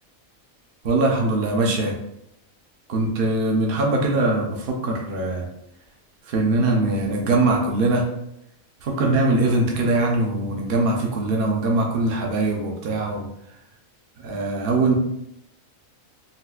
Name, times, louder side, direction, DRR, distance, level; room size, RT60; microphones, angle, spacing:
voice 1, 0.8-1.9 2.9-5.5 6.3-8.1 8.8-13.3 14.2-14.9, right 2 dB, 50° right, 0 dB, 0.7 m, -22 dB
4.0 x 2.7 x 2.3 m, 0.78 s
omnidirectional pair, 1.4 m